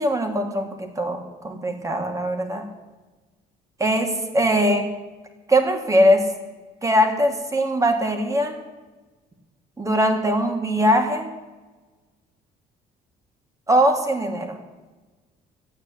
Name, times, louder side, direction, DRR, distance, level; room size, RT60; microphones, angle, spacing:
voice 1, 0.0-2.7 3.8-4.9 5.5-6.2 6.8-8.5 9.8-11.3 13.7-14.6, equal, 20° right, 4 dB, 2.6 m, -21 dB
13.5 x 8.6 x 9.2 m, 1.2 s
cardioid pair, 110°, 17 cm